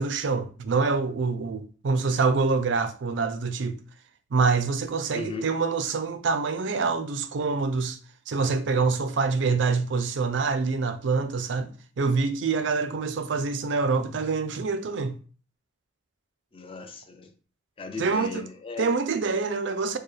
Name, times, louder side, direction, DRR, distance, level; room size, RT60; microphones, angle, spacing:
voice 1, 0.0-3.8 4.3-8.0 8.3-15.2 18.0-18.5 18.8-20.0, right 4 dB, 70° right, 0.4 m, -26 dB
voice 2, 5.1-5.5 16.5-17.3 17.8-18.9, left 3 dB, 30° left, 0.5 m, -36 dB
4.5 x 2.1 x 3.2 m
head